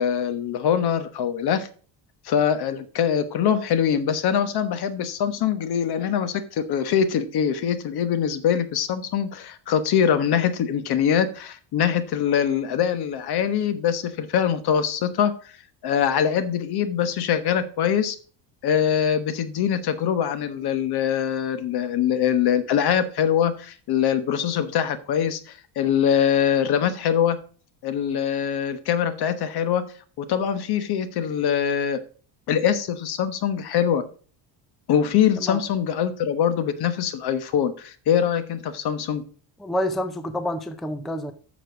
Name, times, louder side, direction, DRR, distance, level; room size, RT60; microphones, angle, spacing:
voice 1, 0.0-1.7 2.2-15.3 15.8-18.2 18.6-27.4 27.8-29.8 30.2-32.0 32.5-34.0 34.9-39.2, left 8 dB, 55° left, 1.2 m, -23 dB
voice 2, 39.6-41.3, equal, ahead, 0.4 m, -28 dB
7.8 x 6.4 x 5.9 m
cardioid pair, 155°, 45 cm